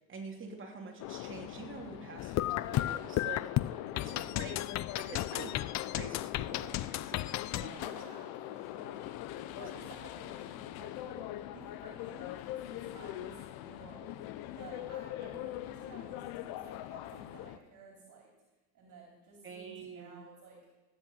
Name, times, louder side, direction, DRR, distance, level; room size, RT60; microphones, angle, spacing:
voice 1, 0.1-4.6 4.9-5.5 5.9-8.0 19.4-20.2, right 4 dB, 30° right, 1 dB, 3.2 m, -47 dB
sound 1, 1.0-17.6, left 13 dB, 65° left, 0.9 m, -42 dB
sound 2, 2.2-7.7, left 15 dB, 45° left, 0.5 m, -34 dB
voice 2, 3.8-4.1 7.9-9.1 9.6-14.2 14.5-18.3 18.7-20.7, right 4 dB, 50° right, -1 dB, 3.8 m, -54 dB
17.0 x 8.9 x 5.7 m, 1.1 s
supercardioid pair, 90°, 40 cm